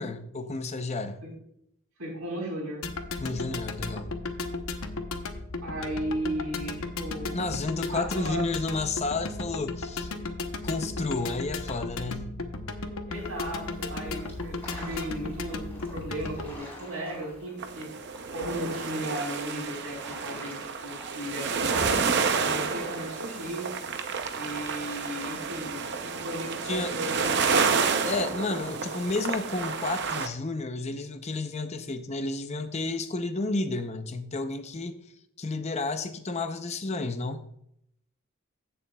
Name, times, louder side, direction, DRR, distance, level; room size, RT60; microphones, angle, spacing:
voice 1, 0.0-1.2 3.2-4.1 7.3-10.1 10.6-12.3 26.6-27.0 28.1-35.0 35.4-37.4, left 3 dB, 30° left, 9 dB, 0.6 m, -31 dB
voice 2, 2.0-2.8 5.6-7.4 7.9-8.4 12.8-15.6 15.9-17.9 18.3-22.0 22.3-23.7 24.3-25.9 26.1-27.7 28.6-29.0, right 1 dB, 70° right, -3 dB, 4.1 m, -36 dB
sound 1, 2.8-16.5, left 3 dB, 65° left, 0.9 m, -35 dB
sound 2, 13.1-23.5, left 1 dB, 10° left, 3.8 m, -48 dB
sound 3, 17.6-30.3, right 5 dB, 50° right, 0.6 m, -30 dB
16.0 x 6.8 x 2.3 m, 0.74 s
head